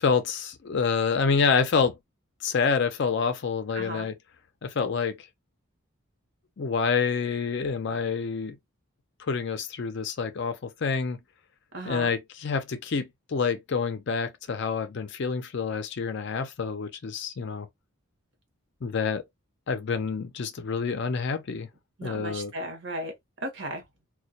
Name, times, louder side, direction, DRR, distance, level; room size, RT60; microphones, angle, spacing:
voice 1, 0.0-2.0 2.4-4.1 4.6-5.2 6.6-8.6 9.2-11.2 11.8-17.7 18.8-19.2 19.7-21.7 22.0-22.5, left 5 dB, 55° left, 0.4 m, -27 dB
voice 2, 3.7-4.1 11.7-12.1 22.0-23.1 23.4-23.8, right 1 dB, 55° right, 0.9 m, -35 dB
2.2 x 2.1 x 2.6 m
head